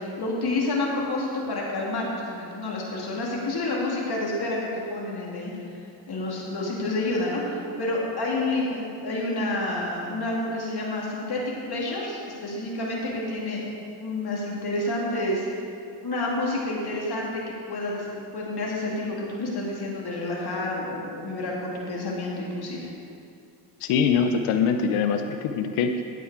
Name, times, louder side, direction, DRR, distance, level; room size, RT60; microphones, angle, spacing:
voice 1, 0.0-11.4 11.7-13.6 14.0-15.5 16.0-17.4 17.7-22.9, left 2 dB, 50° left, -4 dB, 2.4 m, -29 dB
voice 2, 23.8-26.0, left 6 dB, 85° left, 6 dB, 0.7 m, -23 dB
9.2 x 8.8 x 4.7 m, 2.5 s
supercardioid pair, 55°, 49 cm